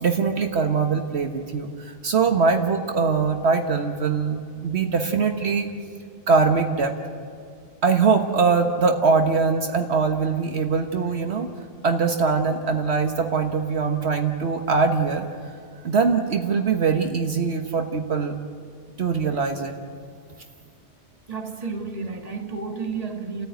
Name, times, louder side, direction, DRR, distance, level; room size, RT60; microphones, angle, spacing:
voice 1, 0.0-5.7 6.3-6.9 7.8-11.5 11.8-15.3 15.8-18.4 19.0-19.7, right 5 dB, 70° right, 5 dB, 1.5 m, -22 dB
voice 2, 21.3-23.5, right 4 dB, 35° right, 4 dB, 1.8 m, -31 dB
29.5 x 14.0 x 9.3 m, 2.1 s
omnidirectional pair, 1.2 m